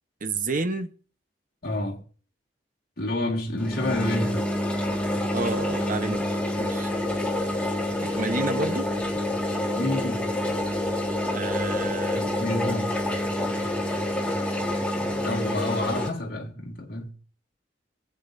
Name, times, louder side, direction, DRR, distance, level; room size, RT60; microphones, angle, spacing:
voice 1, 0.2-0.9 5.3-6.3 6.6-6.9 8.0-8.9 11.3-12.4, right 3 dB, 45° right, 1.0 m, -30 dB
voice 2, 1.6-2.0 3.0-4.5 9.7-10.3 12.1-13.0 15.2-17.1, left 1 dB, 55° left, 2.0 m, -29 dB
sound 1, 3.6-16.1, left 1 dB, 5° left, 1.8 m, -27 dB
23.0 x 7.9 x 2.6 m
head